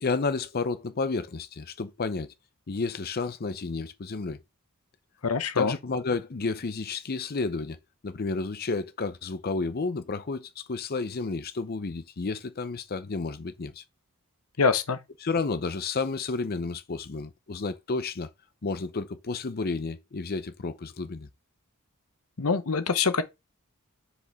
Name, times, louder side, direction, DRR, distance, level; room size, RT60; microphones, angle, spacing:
voice 1, 0.0-2.3 2.7-4.4 5.6-7.8 8.0-13.8 15.2-18.3 18.6-21.3, left 3 dB, 45° left, 0.6 m, -31 dB
voice 2, 5.2-5.8 14.6-15.0 22.4-23.2, left 5 dB, 75° left, 1.0 m, -24 dB
6.5 x 5.2 x 3.5 m
head